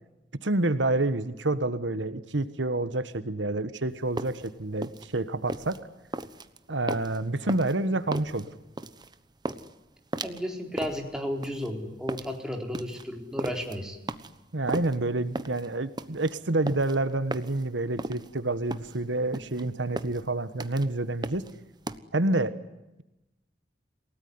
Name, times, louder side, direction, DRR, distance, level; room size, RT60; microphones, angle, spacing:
voice 1, 0.4-5.8 6.7-8.5 14.5-21.4 22.1-22.5, right 2 dB, 85° right, 12 dB, 1.4 m, -28 dB
sound 1, 3.9-22.0, right 2 dB, 25° right, 1.1 m, -37 dB
voice 2, 10.2-14.0, equal, 5° right, 2 dB, 4.2 m, -33 dB
29.0 x 18.5 x 9.7 m, 0.99 s
head